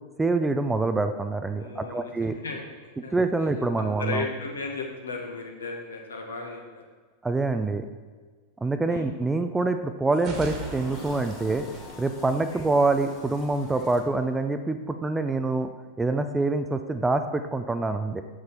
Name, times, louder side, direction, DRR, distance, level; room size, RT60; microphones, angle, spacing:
voice 1, 0.2-2.4 3.1-4.2 7.2-7.9 8.6-11.7 12.0-15.7 16.0-18.2, right 3 dB, 10° right, 8 dB, 0.5 m, -25 dB
voice 2, 1.6-3.1 3.8-6.8 8.9-9.1 12.3-12.6, left 4 dB, 70° left, 1 dB, 1.4 m, -36 dB
sound 1, 10.1-13.0, right 3 dB, 35° right, 1.6 m, -40 dB
sound 2, 10.3-14.6, left 3 dB, 35° left, 1.4 m, -45 dB
7.5 x 7.4 x 4.2 m, 1.5 s
figure-of-eight pair, 90°, 0 cm